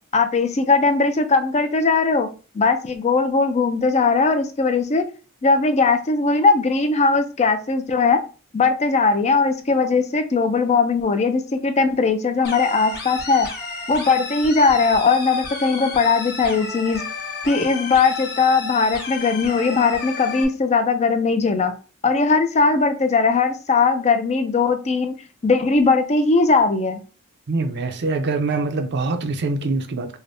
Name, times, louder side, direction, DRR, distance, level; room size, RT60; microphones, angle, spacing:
voice 1, 0.1-2.3 2.5-5.1 5.4-8.2 8.5-13.5 13.9-17.0 17.4-21.7 22.0-25.1 25.4-27.0, left 4 dB, 30° left, 0.5 m, -19 dB
sound 1, 12.4-20.4, left 4 dB, 45° left, 1.0 m, -32 dB
voice 2, 27.5-30.2, right 3 dB, 50° right, 0.5 m, -24 dB
4.9 x 2.1 x 2.6 m
head